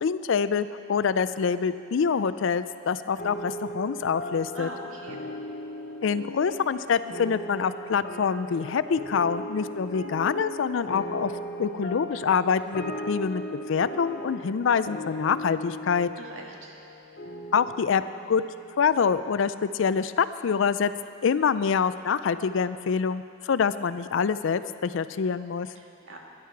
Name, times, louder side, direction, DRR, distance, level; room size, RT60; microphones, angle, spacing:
voice 1, 0.0-4.7 6.0-11.3 11.6-16.1 17.5-18.0 18.3-18.4 18.8-20.9 21.2-25.7, left 6 dB, 70° left, 14 dB, 0.4 m, -25 dB
sound 1, 3.2-20.0, equal, 50° left, 0.9 m, -38 dB
voice 2, 4.5-5.2 16.2-16.7 25.8-26.2, right 1 dB, 85° right, 0 dB, 1.8 m, -42 dB
13.0 x 11.0 x 4.6 m, 2.4 s
head